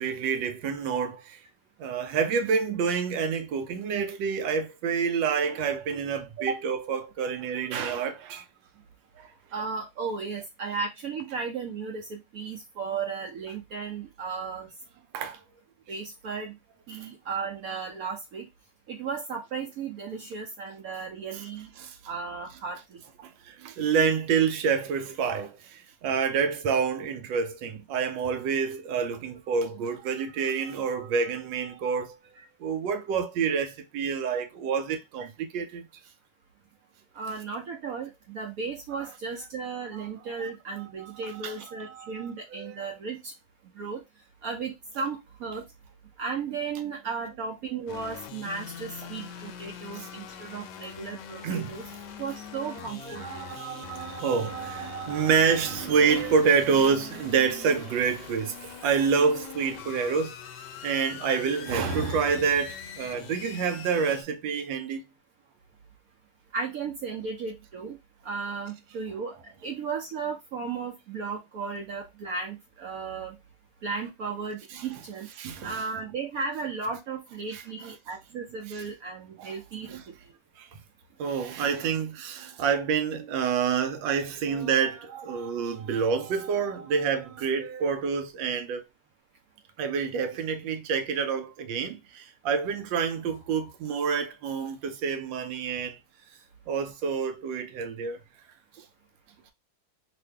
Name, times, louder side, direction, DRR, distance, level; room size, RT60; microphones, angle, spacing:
voice 1, 0.0-1.4 1.8-8.4 9.2-9.3 15.1-15.4 16.9-17.1 21.3-21.4 21.8-22.0 23.2-32.2 32.6-35.9 39.9-40.0 41.0-42.7 49.9-50.1 51.4-51.8 53.0-60.3 60.8-65.0 74.7-74.8 75.4-75.8 77.5-77.6 78.7-78.8 79.4-79.5 79.8-80.0 80.6-80.7 81.2-88.8 89.8-96.0 96.7-98.2 98.8-98.9, right 6 dB, 85° right, 1.3 m, -28 dB
voice 2, 9.5-14.7 15.9-16.5 16.9-18.5 18.9-21.7 22.0-23.0 37.1-43.3 43.7-44.0 44.4-45.6 46.2-51.8 52.2-53.5 66.5-68.0 68.2-73.4 73.8-75.3 75.6-80.0, right 5 dB, 65° right, 0.9 m, -35 dB
sound 1, 47.9-64.2, left 8 dB, 75° left, 1.1 m, -43 dB
2.9 x 2.6 x 3.3 m
omnidirectional pair, 2.0 m